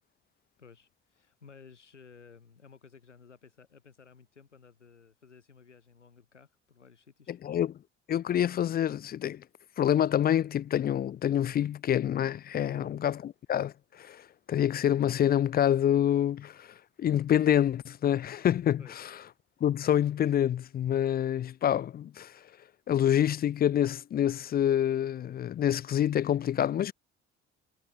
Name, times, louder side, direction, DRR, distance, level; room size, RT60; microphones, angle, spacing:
voice 1, 0.6-7.4 12.6-13.0 18.8-19.0, left 5 dB, 85° left, 3.2 m, -55 dB
voice 2, 7.3-7.8 8.1-9.4 9.8-19.0 19.6-22.3 22.9-26.9, left 10 dB, 25° left, 0.4 m, -27 dB
figure-of-eight pair, 50°, 35 cm